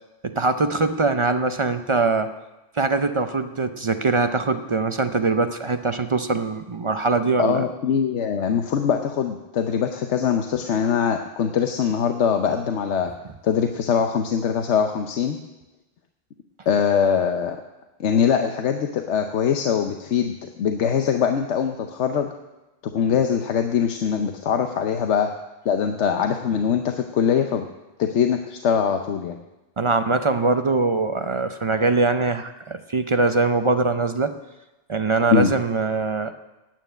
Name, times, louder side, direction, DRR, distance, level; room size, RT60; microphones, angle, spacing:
voice 1, 0.2-2.3 2.7-7.7 29.8-34.3 34.9-36.3, right 3 dB, 40° right, 8 dB, 0.4 m, -22 dB
voice 2, 7.4-13.1 13.4-15.4 16.7-17.6 18.0-22.3 22.8-25.3 25.6-27.7 28.0-29.4 35.3-35.5, left 7 dB, 90° left, 5 dB, 1.1 m, -22 dB
9.3 x 9.0 x 8.9 m, 1.0 s
omnidirectional pair, 1.1 m